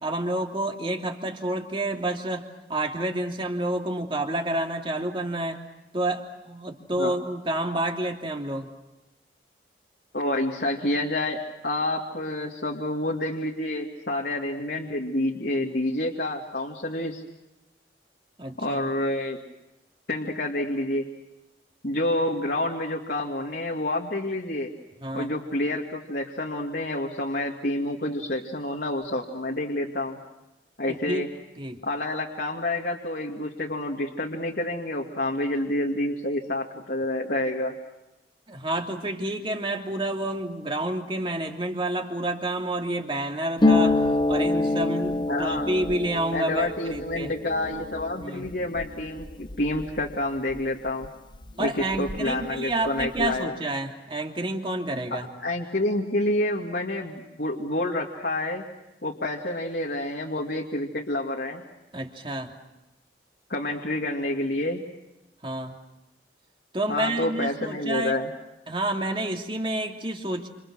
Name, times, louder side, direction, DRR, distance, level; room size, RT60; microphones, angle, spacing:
voice 1, 0.0-5.6 5.9-8.7 18.4-18.8 25.0-25.3 30.9-31.3 31.6-31.8 38.5-44.0 44.3-47.3 48.2-48.5 51.6-55.3 61.9-62.5 65.4-65.8 66.7-68.2 68.7-70.5, right 1 dB, 30° right, 3 dB, 2.9 m, -29 dB
voice 2, 10.1-17.2 18.6-19.4 20.1-21.1 21.8-24.7 25.1-30.2 30.8-31.3 31.8-37.8 45.3-45.7 46.3-51.1 51.6-53.6 55.1-58.7 59.0-61.6 63.5-64.9 66.9-68.3, left 1 dB, 60° left, -1 dB, 2.5 m, -28 dB
Harp, 43.6-51.1 51.3-52.5 52.7-53.4, left 2 dB, 25° left, 0.9 m, -27 dB
29.5 x 28.0 x 6.4 m, 0.99 s
head